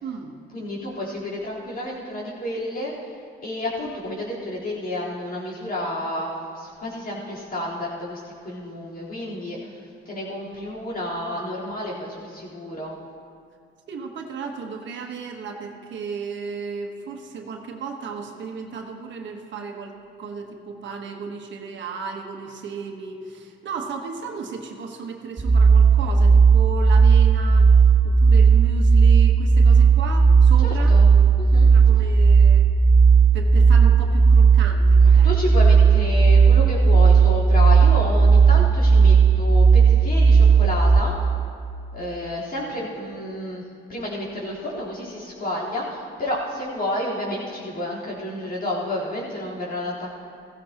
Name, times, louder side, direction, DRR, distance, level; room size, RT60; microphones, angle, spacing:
voice 1, 0.0-0.3 13.9-27.7 28.0-31.0 31.7-32.7 33.3-35.6, right 5 dB, 65° right, 2 dB, 1.4 m, -34 dB
voice 2, 0.5-2.9 3.4-12.9 30.6-31.1 31.4-31.7 32.0-32.1 35.0-41.1 41.9-43.6 43.9-50.1, left 1 dB, 45° left, -7 dB, 4.0 m, -30 dB
sound 1, 25.4-41.0, right 5 dB, 20° right, 0.4 m, -14 dB
15.5 x 15.5 x 3.0 m, 2.3 s
cardioid pair, 90°, 20 cm